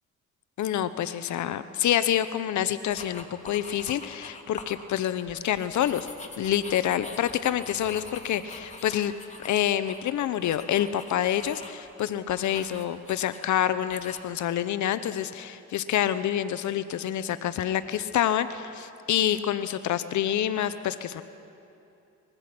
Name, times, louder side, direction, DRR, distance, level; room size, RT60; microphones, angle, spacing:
voice 1, 0.6-6.1 6.4-9.1 9.4-21.2, left 11 dB, 70° left, 13 dB, 0.9 m, -27 dB
sound 1, 2.9-4.8 5.2-11.9 12.3-13.5 13.9-14.2, left 3 dB, 25° left, 2.4 m, -45 dB
24.5 x 21.5 x 6.1 m, 2.8 s
cardioid pair, 90°, 30 cm